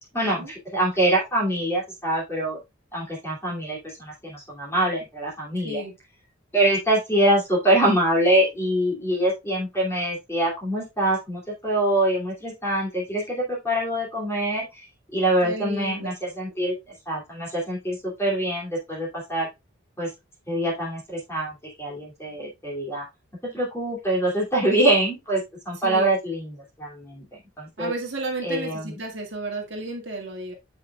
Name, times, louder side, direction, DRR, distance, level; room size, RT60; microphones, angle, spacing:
voice 1, 0.1-2.6 2.9-5.8 6.5-14.8 15.1-16.7 17.1-19.5 20.0-20.1 20.5-23.0 23.5-27.2 27.6-27.9 28.4-28.9, right 1 dB, 10° left, 2.7 m, -24 dB
voice 2, 15.4-16.1 16.5-16.6 25.8-26.2 27.8-30.5, right 2 dB, 55° right, 1.9 m, -33 dB
7.6 x 6.3 x 2.4 m
head